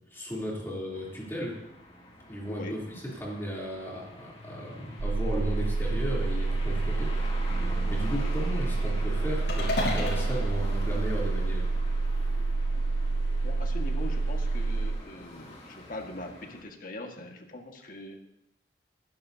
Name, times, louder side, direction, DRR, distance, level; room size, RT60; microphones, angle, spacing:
voice 1, 0.1-1.6 2.2-2.8 3.2-7.1 7.9-11.7, equal, 15° left, -5 dB, 3.2 m, -35 dB
sound 1, 0.9-16.6, left 1 dB, 35° left, 2.6 m, -45 dB
voice 2, 2.5-2.8 7.1-7.4 8.1-8.3 13.4-18.2, left 1 dB, 50° left, 3 dB, 1.6 m, -42 dB
sound 2, 5.0-15.0, right 3 dB, 45° right, 0.4 m, -28 dB
sound 3, 9.5-11.8, left 2 dB, 85° left, 5.8 m, -34 dB
20.5 x 12.0 x 2.8 m, 0.81 s
head